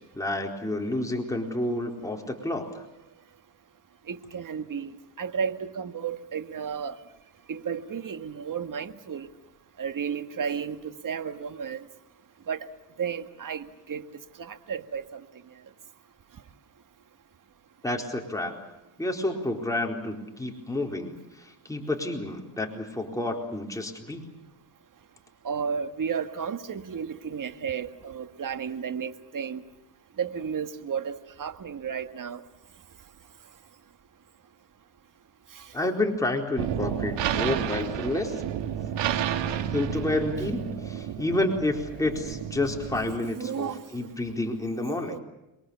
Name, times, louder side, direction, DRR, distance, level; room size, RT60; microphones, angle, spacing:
voice 1, 0.0-2.8 17.8-18.6 19.0-24.2 35.7-38.3 39.7-45.2, left 2 dB, 10° left, 4.2 m, -30 dB
voice 2, 4.1-7.0 7.5-9.3 9.8-10.8 11.0-11.8 12.5-12.7 13.0-14.0 14.4-15.2 25.4-29.6 30.2-32.4 37.3-37.4 43.3-43.8 45.1-45.2, right 7 dB, 45° right, 1.9 m, -33 dB
sound 1, 36.6-43.2, right 9 dB, 85° right, 2.3 m, -31 dB
28.0 x 22.5 x 7.1 m
cardioid pair, 90°, 42 cm